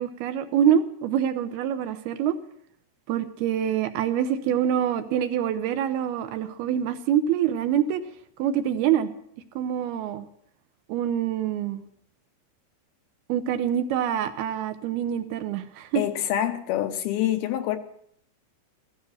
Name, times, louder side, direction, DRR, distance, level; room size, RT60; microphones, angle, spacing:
voice 1, 0.0-2.4 3.1-8.0 8.4-9.1 9.6-10.3 10.9-11.8 13.3-16.0, right 9 dB, 75° right, 9 dB, 2.7 m, -25 dB
voice 2, 16.0-17.8, left 12 dB, 75° left, 8 dB, 2.5 m, -26 dB
15.0 x 14.5 x 6.4 m, 0.67 s
omnidirectional pair, 4.8 m